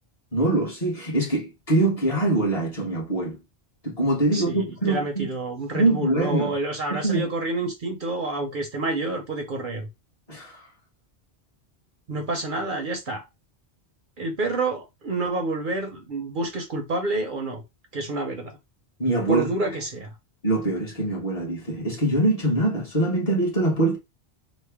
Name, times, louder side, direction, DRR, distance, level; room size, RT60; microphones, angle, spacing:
voice 1, 0.3-3.4 3.8-5.3 5.7-6.5 6.9-7.3 10.3-10.7 19.0-19.5 20.4-24.0, right 2 dB, 35° left, 1.2 m, -23 dB
voice 2, 4.3-9.9 12.1-13.2 14.2-17.6 17.9-18.5 19.3-20.1, right 2 dB, 55° right, 0.7 m, -28 dB
3.1 x 2.1 x 3.4 m
omnidirectional pair, 1.1 m